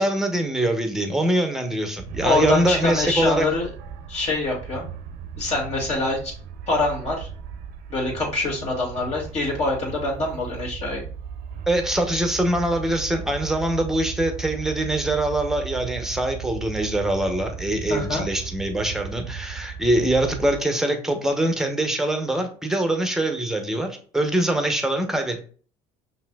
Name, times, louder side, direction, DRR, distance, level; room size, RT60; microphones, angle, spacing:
voice 1, 0.0-3.5 11.7-25.4, right 1 dB, 5° right, 5 dB, 0.8 m, -23 dB
sound 1, 2.0-20.6, right 7 dB, 70° right, 0.5 m, -36 dB
voice 2, 2.2-3.7 4.1-4.9 5.4-6.3 6.7-7.3 7.9-11.0 17.9-18.3, left 2 dB, 45° left, -2 dB, 2.0 m, -25 dB
5.6 x 2.6 x 2.3 m, 0.42 s
supercardioid pair, 100°, 15 cm